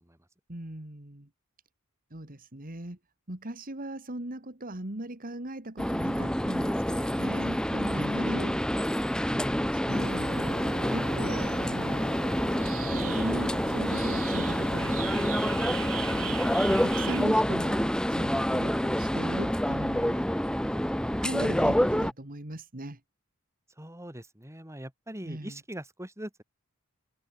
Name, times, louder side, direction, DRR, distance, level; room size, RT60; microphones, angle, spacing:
voice 1, 0.5-1.3 2.1-3.0 3.3-8.8 9.3-12.2 12.8-15.4 16.1-16.3 16.7-20.3 21.2-23.0 25.2-25.6, right 1 dB, 40° right, 2.5 m, -39 dB
sound 1, 5.8-22.1, equal, 5° left, 1.4 m, -27 dB
voice 2, 8.0-8.3 23.8-26.4, equal, 15° right, 5.4 m, -40 dB
sound 2, 9.9-17.2, right 6 dB, 70° right, 2.8 m, -39 dB
head